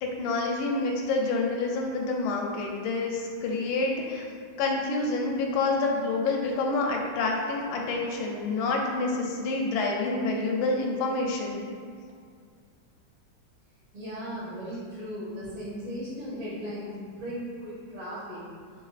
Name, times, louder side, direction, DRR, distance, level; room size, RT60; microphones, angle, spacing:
voice 1, 0.0-4.2 4.6-11.6, left 3 dB, 80° left, 0 dB, 1.4 m, -28 dB
voice 2, 13.9-18.4, equal, 85° right, -11 dB, 2.5 m, -37 dB
4.9 x 3.7 x 2.4 m, 2.1 s
omnidirectional pair, 2.3 m